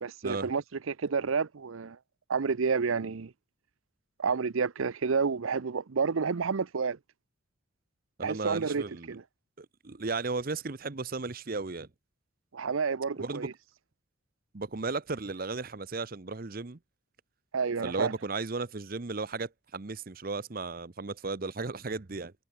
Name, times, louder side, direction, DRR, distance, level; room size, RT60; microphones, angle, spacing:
voice 1, 0.0-2.0 2.3-3.3 4.2-7.0 8.2-9.2 12.5-13.5 17.5-18.1, right 5 dB, 75° right, 0.6 m, -30 dB
voice 2, 8.2-9.2 9.6-11.9 13.2-13.5 14.5-16.8 17.8-22.3, right 3 dB, 45° right, 0.8 m, -35 dB
head